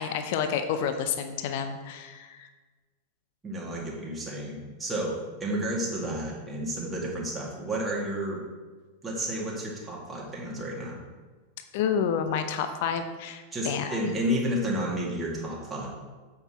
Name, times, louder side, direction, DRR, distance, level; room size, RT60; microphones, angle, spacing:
voice 1, 0.0-2.5 11.7-14.1, left 7 dB, 50° left, 8 dB, 0.6 m, -29 dB
voice 2, 3.4-8.4 9.0-11.0 13.5-15.9, equal, 10° right, -4 dB, 2.1 m, -31 dB
8.0 x 5.9 x 4.3 m, 1.3 s
figure-of-eight pair, 90°, 0 cm